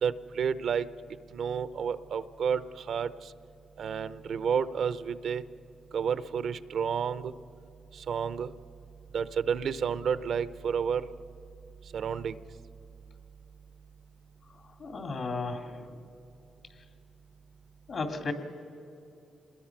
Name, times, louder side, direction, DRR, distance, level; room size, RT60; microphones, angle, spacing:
voice 1, 0.0-0.9 1.3-3.3 3.8-5.4 5.9-7.3 7.9-8.5 9.1-11.1 11.9-12.4, right 7 dB, 70° right, 14 dB, 0.7 m, -30 dB
voice 2, 14.8-15.9 17.9-18.3, left 3 dB, 60° left, 6 dB, 2.6 m, -34 dB
26.5 x 20.5 x 6.0 m, 2.7 s
cardioid pair, 75°, 0 cm